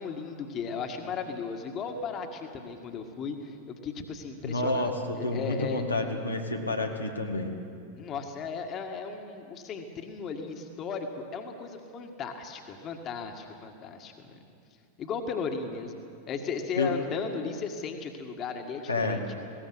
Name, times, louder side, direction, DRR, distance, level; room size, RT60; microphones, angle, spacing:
voice 1, 0.0-5.8 8.0-14.4 15.0-16.0 16.3-19.4, left 5 dB, 30° left, 4 dB, 1.8 m, -36 dB
voice 2, 4.4-7.6 16.8-16.9 18.9-19.2, left 2 dB, 85° left, 1 dB, 1.8 m, -29 dB
20.0 x 17.5 x 8.0 m, 2.4 s
figure-of-eight pair, 90°, 0 cm